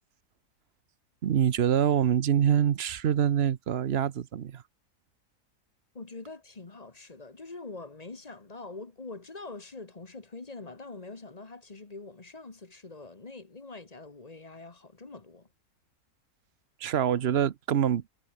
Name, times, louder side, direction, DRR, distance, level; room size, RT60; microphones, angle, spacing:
voice 1, 1.2-4.6 16.8-18.0, right 9 dB, 50° right, 0.9 m, -25 dB
voice 2, 5.9-15.5, left 3 dB, 25° left, 1.4 m, -44 dB
omnidirectional pair, 1.6 m